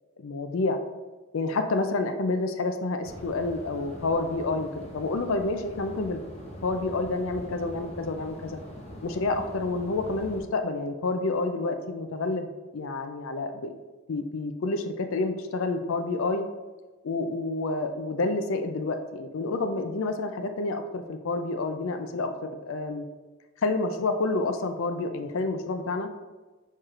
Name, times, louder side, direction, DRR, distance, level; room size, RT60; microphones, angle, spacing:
voice 1, 0.2-0.8 1.3-6.2 6.6-8.6 9.0-13.7 14.1-16.4 17.0-22.3 22.6-23.0 23.6-26.1, left 3 dB, 65° left, 6 dB, 0.4 m, -29 dB
sound 1, 3.0-10.4, equal, 30° left, 0.7 m, -43 dB
4.7 x 4.5 x 2.4 m, 1.3 s
head